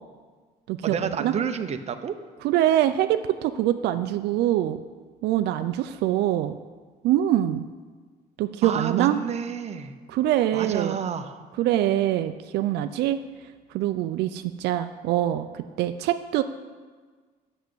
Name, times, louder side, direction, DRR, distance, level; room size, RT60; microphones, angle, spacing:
voice 1, 0.8-2.1 8.6-9.9 10.5-11.4, right 7 dB, 40° right, 8 dB, 0.8 m, -29 dB
voice 2, 2.4-4.8 5.2-6.6 7.0-7.7 8.4-9.2 10.1-11.0 11.6-13.2 13.7-16.4, right 12 dB, 80° right, 9 dB, 0.5 m, -24 dB
8.1 x 6.5 x 7.9 m, 1.5 s
cardioid pair, 110°, 17 cm